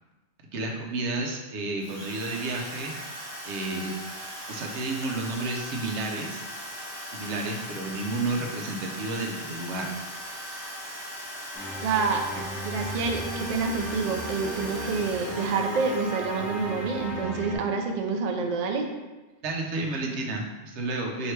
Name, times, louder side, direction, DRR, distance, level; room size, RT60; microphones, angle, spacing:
voice 1, 0.5-3.1 3.4-3.9 4.4-6.4 7.1-10.2 12.4-12.5 19.4-21.3, right 2 dB, 85° right, 1 dB, 1.0 m, -31 dB
Drill, 1.8-17.0, equal, 25° right, 1.3 m, -39 dB
sound 1, 11.5-17.6, equal, ahead, 1.0 m, -35 dB
voice 2, 11.8-12.2 12.6-18.9, right 4 dB, 60° right, 3 dB, 0.4 m, -28 dB
3.2 x 2.8 x 4.4 m, 1.2 s
omnidirectional pair, 1.1 m